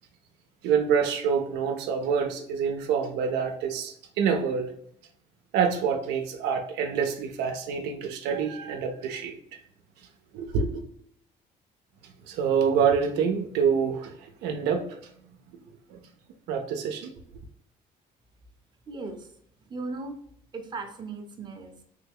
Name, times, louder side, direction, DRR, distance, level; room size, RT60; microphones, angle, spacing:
voice 1, 0.6-4.7 5.5-9.3 10.3-10.8 12.3-14.1 14.4-14.9 15.9-16.0 16.5-17.1, right 6 dB, 90° right, 0.5 m, -26 dB
voice 2, 18.9-20.2 20.5-21.8, right 3 dB, 25° right, 0.7 m, -38 dB
3.2 x 2.2 x 3.4 m
cardioid pair, 110°, 17 cm